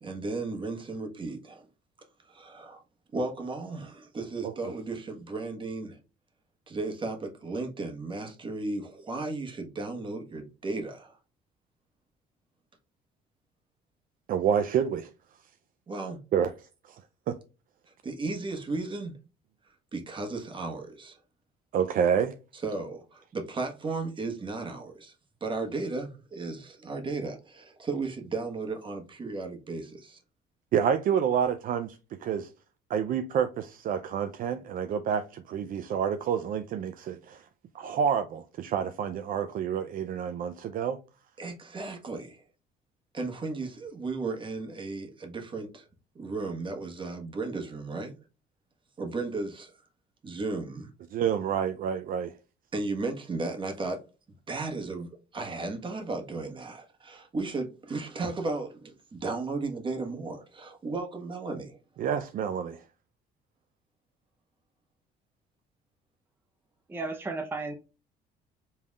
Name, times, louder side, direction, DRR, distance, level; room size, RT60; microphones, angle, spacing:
voice 1, 0.0-1.6 2.3-2.8 3.1-6.0 6.7-11.1 15.9-16.2 18.0-19.2 19.9-21.2 22.5-25.1 25.4-30.2 41.4-42.4 43.1-45.8 46.1-48.2 49.0-49.7 50.2-50.9 52.7-54.0 54.5-61.8, right 3 dB, 30° right, 1.3 m, -35 dB
voice 2, 14.3-15.1 16.3-16.5 17.3-17.4 21.7-22.4 30.7-32.5 32.9-37.4 37.7-41.0 51.1-52.3 62.0-62.8, right 8 dB, 55° right, 0.5 m, -28 dB
voice 3, 66.9-67.7, right 3 dB, 15° right, 0.7 m, -33 dB
5.4 x 3.4 x 2.3 m
cardioid pair, 110°, 17 cm